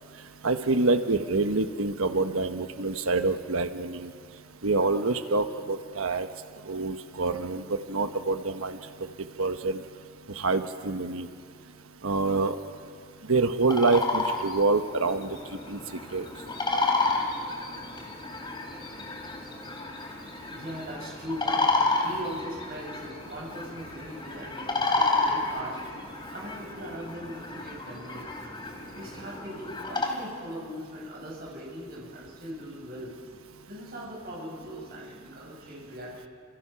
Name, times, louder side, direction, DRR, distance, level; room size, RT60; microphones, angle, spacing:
voice 1, 0.4-4.1 4.6-6.3 6.7-8.8 9.4-9.8 10.4-11.3 12.0-12.6 13.3-15.4 15.7-15.8 16.1-16.2 16.7-16.9, right 3 dB, 75° right, 8 dB, 1.2 m, -26 dB
sound 1, 13.6-30.1, left 3 dB, 20° left, 3.2 m, -31 dB
voice 2, 20.5-25.8 26.3-28.3 28.9-33.1 33.7-36.3, equal, 45° right, -3 dB, 7.9 m, -40 dB
29.0 x 27.5 x 5.8 m, 2.2 s
head